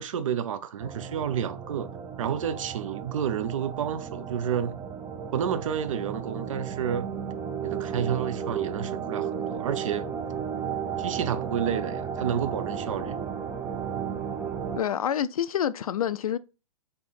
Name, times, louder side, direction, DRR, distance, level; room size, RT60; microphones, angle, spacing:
voice 1, 0.0-1.9 2.2-4.8 5.3-7.1 7.6-10.1 11.0-13.2, right 8 dB, 60° right, 0.6 m, -30 dB
sound 1, 0.8-14.8, right 7 dB, 10° right, 0.4 m, -34 dB
voice 2, 14.8-16.4, left 9 dB, 70° left, 0.4 m, -27 dB
3.7 x 3.4 x 4.1 m
hypercardioid pair, 130°, 19 cm